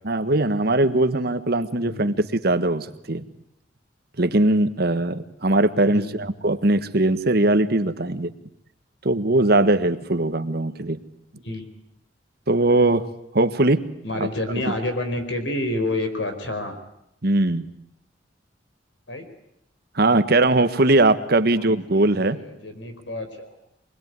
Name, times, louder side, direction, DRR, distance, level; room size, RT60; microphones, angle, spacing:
voice 1, 0.0-3.2 4.2-8.3 9.0-11.0 12.5-13.1 13.3-13.8 14.2-14.3 14.7-14.8 17.2-17.7 19.9-22.4, right 2 dB, 55° right, 10 dB, 1.5 m, -20 dB
voice 2, 1.8-2.2 5.9-6.2 11.4-11.6 14.0-16.7 19.1-19.3 21.3-23.5, left 1 dB, 75° left, 7 dB, 4.9 m, -29 dB
25.0 x 21.0 x 9.6 m, 0.77 s
head